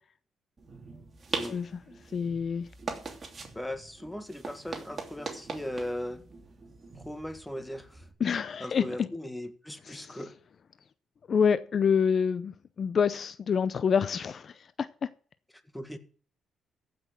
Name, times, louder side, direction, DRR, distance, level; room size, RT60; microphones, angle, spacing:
sound 1, 0.6-8.1, right 4 dB, 35° right, 2.9 m, -41 dB
voice 1, 1.4-1.8 2.1-2.7 8.2-9.1 9.8-10.3 11.3-15.1, left 6 dB, 50° left, 0.6 m, -27 dB
voice 2, 3.6-6.2 7.1-7.9 8.6-10.3 15.7-16.0, left 1 dB, 5° left, 1.7 m, -38 dB
15.0 x 6.2 x 7.4 m
cardioid pair, 90°, 0 cm